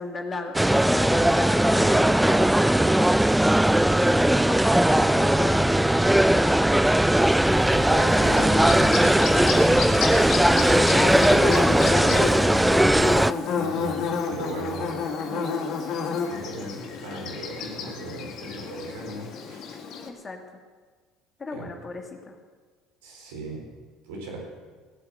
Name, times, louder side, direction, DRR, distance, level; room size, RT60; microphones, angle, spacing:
voice 1, 0.0-3.0 3.8-7.1 10.2-13.1 20.1-20.4 21.4-22.4, left 3 dB, 30° left, 3 dB, 2.2 m, -34 dB
sound 1, 0.5-13.3, right 1 dB, 5° right, 0.4 m, -19 dB
Bird / Buzz, 7.2-20.1, left 5 dB, 55° left, 1.9 m, -31 dB
voice 2, 7.5-9.1 9.6-10.2 13.5-15.0 15.3-15.6 16.2-19.8 21.5-21.7 23.0-23.6 24.0-24.4, right 2 dB, 75° right, -1 dB, 4.5 m, -37 dB
18.0 x 8.0 x 7.8 m, 1.5 s
hypercardioid pair, 65°, 0 cm